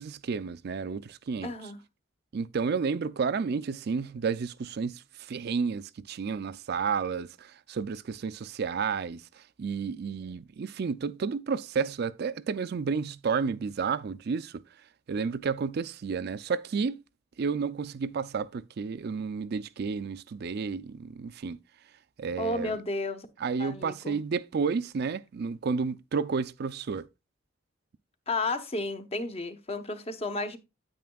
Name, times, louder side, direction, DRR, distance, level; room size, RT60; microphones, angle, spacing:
voice 1, 0.0-1.5 2.3-14.6 15.1-17.0 17.4-21.6 22.2-22.8 23.4-27.1, right 5 dB, 55° right, 0.4 m, -31 dB
voice 2, 1.4-1.8 22.4-23.3 23.6-24.2 28.3-30.6, left 2 dB, 30° left, 0.9 m, -32 dB
9.2 x 8.6 x 2.3 m
head